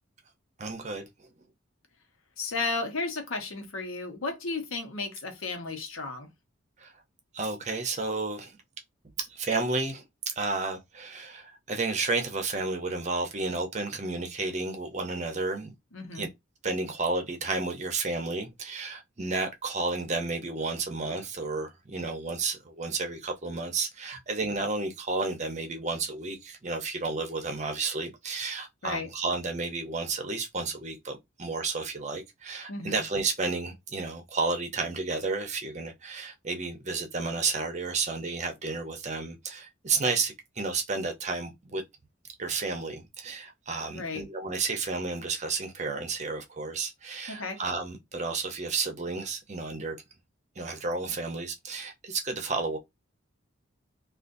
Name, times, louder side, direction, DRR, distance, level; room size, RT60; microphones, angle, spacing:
voice 1, 0.6-1.3 6.8-6.9 7.3-8.6 9.3-15.7 16.1-16.3 16.6-41.8 42.4-50.0 50.6-52.8, right 3 dB, 35° right, 0.7 m, -32 dB
voice 2, 2.4-6.3 15.9-16.3 28.8-29.1 32.7-33.0 43.9-44.2 47.3-47.6, left 3 dB, 90° left, 0.9 m, -34 dB
3.7 x 2.4 x 2.6 m
head